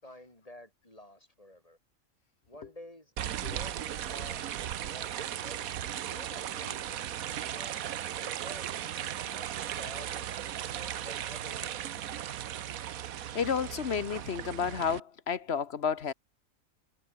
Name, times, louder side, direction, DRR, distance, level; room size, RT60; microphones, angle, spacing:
voice 1, 0.0-1.8 2.5-5.6 6.1-7.0 7.3-7.8 8.2-9.5 9.8-12.0, left 1 dB, 25° left, 5.5 m, -51 dB
sound 1, 3.2-15.0, right 11 dB, 90° right, 1.3 m, -37 dB
voice 2, 13.3-16.1, left 7 dB, 50° left, 1.2 m, -31 dB
omnidirectional pair, 1.4 m